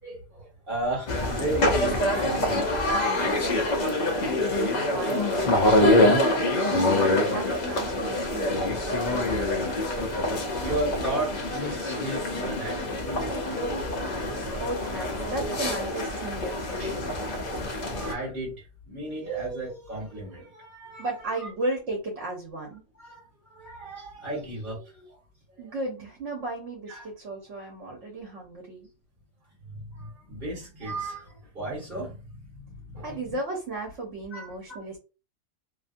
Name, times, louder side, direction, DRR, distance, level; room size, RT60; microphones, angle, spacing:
voice 1, 0.0-3.3 8.6-9.9 10.6-13.6 14.3-14.5 16.1-16.3 16.8-16.9 17.7-21.5 22.9-25.2 25.5-25.7 26.9-27.1 29.6-33.4 34.3-34.8, right 1 dB, 45° right, 1.7 m, -35 dB
sound 1, 1.1-18.1, left 1 dB, 45° left, 0.7 m, -25 dB
voice 2, 4.0-5.7 6.2-8.7 14.3-17.3 21.0-22.8 25.6-28.9 33.0-35.0, right 2 dB, 70° right, 1.2 m, -35 dB
2.8 x 2.6 x 2.5 m
omnidirectional pair, 1.3 m